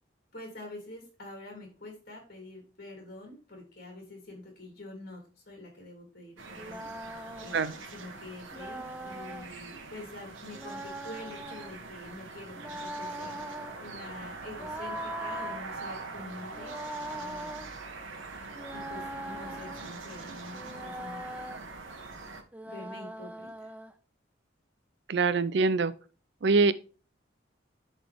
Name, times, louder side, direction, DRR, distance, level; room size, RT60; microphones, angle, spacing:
voice 1, 0.3-16.7 17.1-17.6 18.7-21.5 22.6-23.7, left 2 dB, 50° left, 3.2 m, -46 dB
sound 1, 6.4-22.4, right 3 dB, 85° right, 1.4 m, -43 dB
sound 2, 6.5-7.6 8.5-9.5 10.5-11.8 12.5-13.8 14.5-15.6 16.5-17.7 18.5-19.9 20.5-21.6 22.5-23.9, right 1 dB, 10° right, 0.5 m, -41 dB
voice 2, 25.1-25.9 26.4-26.7, right 4 dB, 60° right, 0.4 m, -24 dB
11.0 x 4.1 x 3.5 m
head